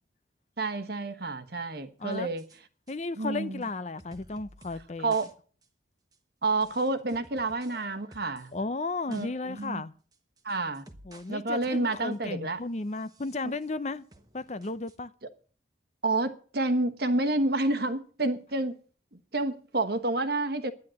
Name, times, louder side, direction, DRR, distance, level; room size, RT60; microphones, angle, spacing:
voice 1, 0.6-2.4 3.2-3.6 5.0-5.3 6.4-8.5 9.1-9.8 10.4-10.8 11.3-12.6 16.0-18.8 19.1-20.7, right 2 dB, 55° right, 1.2 m, -29 dB
voice 2, 2.0-2.3 2.9-5.1 8.5-9.9 11.0-14.1 14.3-15.1, left 3 dB, 35° left, 0.6 m, -34 dB
sound 1, 2.1-2.6 2.9-3.0 3.6-3.7 4.0-4.9 5.1-5.3 5.6-5.7 6.1-6.2 6.6-8.5 8.9-9.3 9.6-9.7 10.1-11.4 11.6-12.3 12.9-13.7 14.1-15.0, right 2 dB, 20° right, 1.2 m, -54 dB
10.5 x 10.5 x 7.6 m
head